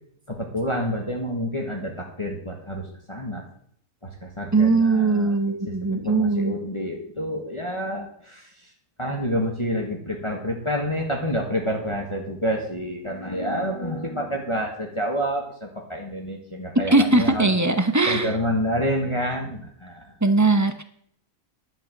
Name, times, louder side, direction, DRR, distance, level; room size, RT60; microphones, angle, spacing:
voice 1, 0.3-3.4 4.0-8.7 9.0-17.5 18.1-20.1, equal, 20° left, 1 dB, 1.7 m, -28 dB
voice 2, 4.5-6.5 16.9-18.3 20.2-20.8, right 3 dB, 15° right, 8 dB, 0.8 m, -20 dB
11.5 x 5.6 x 7.6 m, 0.66 s
omnidirectional pair, 1.5 m